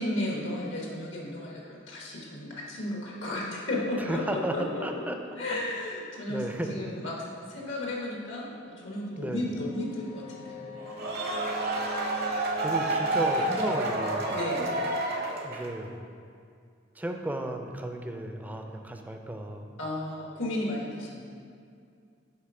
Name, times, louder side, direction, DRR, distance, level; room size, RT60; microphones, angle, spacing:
voice 1, 0.0-5.1 5.4-7.1 7.5-10.7 14.3-14.7 19.8-21.3, left 1 dB, 85° left, -3 dB, 1.3 m, -34 dB
voice 2, 4.0-5.2 6.3-6.8 9.2-9.4 12.6-14.4 15.4-16.0 17.0-19.7, right 1 dB, 10° right, 4 dB, 0.4 m, -34 dB
sound 1, 8.3-14.8, left 2 dB, 45° left, 0.7 m, -41 dB
sound 2, 10.8-15.8, right 2 dB, 55° right, 0.8 m, -29 dB
7.5 x 3.5 x 4.9 m, 2.3 s
head